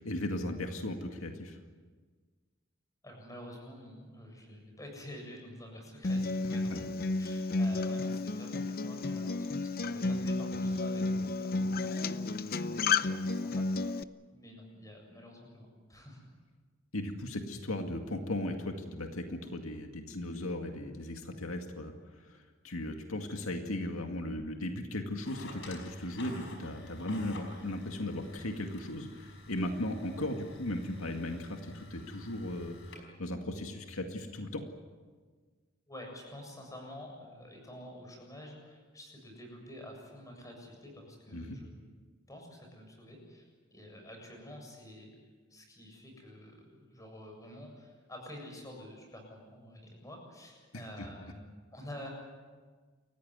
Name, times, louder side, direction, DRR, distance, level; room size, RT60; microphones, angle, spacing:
voice 1, 0.0-1.6 6.7-6.9 16.9-34.6 41.3-41.6 51.0-51.1, left 1 dB, 85° left, 4 dB, 2.2 m, -37 dB
voice 2, 3.0-6.9 7.2-14.0 14.3-16.3 35.9-41.7 42.3-45.1 45.5-51.4 51.7-52.1, left 1 dB, 15° left, 2 dB, 7.4 m, -49 dB
Acoustic guitar, 6.0-14.0, left 3 dB, 45° left, 0.7 m, -32 dB
sound 1, 25.2-33.0, left 2 dB, 65° left, 5.3 m, -50 dB
29.5 x 15.0 x 9.7 m, 1.5 s
head